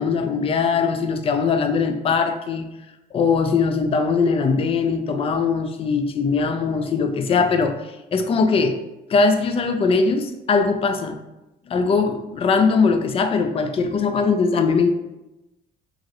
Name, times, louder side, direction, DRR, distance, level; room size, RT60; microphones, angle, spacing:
voice 1, 0.0-2.7 3.1-8.8 9.1-11.2 11.7-15.0, left 4 dB, 35° left, 7 dB, 0.3 m, -20 dB
2.9 x 2.5 x 2.8 m, 0.95 s
cardioid pair, 110°, 17 cm